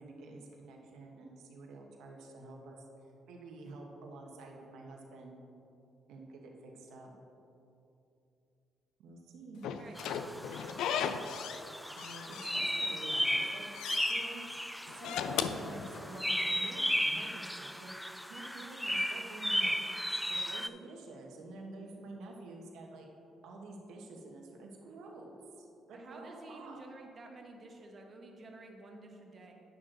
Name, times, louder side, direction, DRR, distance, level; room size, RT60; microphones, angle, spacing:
voice 1, 0.0-2.8 3.3-5.4 6.1-7.1 9.0-9.7 12.0-13.7 14.1-14.4 14.9-17.9 18.3-19.7 20.3-23.1 23.4-25.3 25.6-26.8, right 2 dB, 85° right, 0 dB, 1.2 m, -49 dB
Slam / Squeak, 9.6-11.7 12.0-12.9 13.3-14.2 14.9-16.4, left 7 dB, 85° left, 0.4 m, -37 dB
sound 1, 10.0-20.7, equal, ahead, 0.3 m, -35 dB
voice 2, 25.9-29.5, right 2 dB, 45° right, 2 dB, 1.2 m, -51 dB
9.5 x 6.3 x 3.9 m, 2.8 s
cardioid pair, 90°, 0 cm